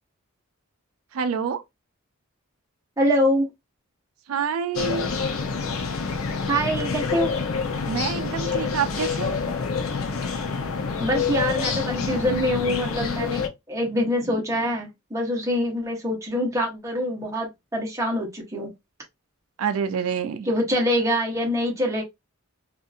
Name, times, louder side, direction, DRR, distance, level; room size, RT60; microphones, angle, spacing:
voice 1, 1.1-1.6 4.3-5.1 7.9-9.4 19.6-20.5, right 6 dB, 80° right, 0.4 m, -27 dB
voice 2, 3.0-3.5 6.5-7.3 11.0-13.4 13.7-18.7 20.4-22.0, equal, 15° right, 0.9 m, -24 dB
sound 1, 4.7-13.5, left 5 dB, 85° left, 0.6 m, -27 dB
2.7 x 2.5 x 2.4 m
head